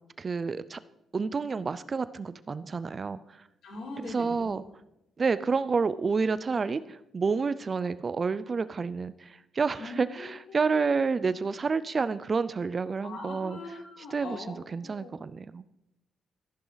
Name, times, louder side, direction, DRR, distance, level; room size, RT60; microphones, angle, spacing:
voice 1, 0.2-0.8 1.1-3.4 4.0-4.6 5.2-13.6 14.1-15.6, right 4 dB, 30° right, 15 dB, 0.4 m, -29 dB
voice 2, 3.6-4.4 9.8-11.0 13.0-14.5 14.8-15.1, left 3 dB, 65° left, 0 dB, 3.5 m, -42 dB
14.0 x 11.0 x 4.0 m, 0.89 s
cardioid pair, 155°, 0 cm